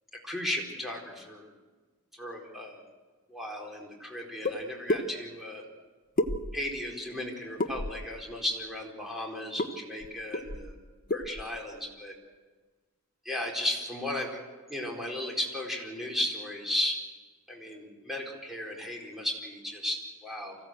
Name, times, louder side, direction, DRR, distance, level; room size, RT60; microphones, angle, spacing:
voice 1, 0.2-1.5 2.1-2.8 3.3-5.6 6.5-10.8 11.1-12.1 13.2-14.4 14.7-17.0 17.5-20.6, left 1 dB, ahead, -1 dB, 4.4 m, -35 dB
sound 1, 4.4-4.6 4.9-5.0 6.2-6.8 7.6-8.1 9.6-9.7 10.0-10.1 10.3-10.7 11.1-11.4, left 1 dB, 40° left, 1.1 m, -29 dB
25.0 x 16.0 x 7.9 m, 1.4 s
head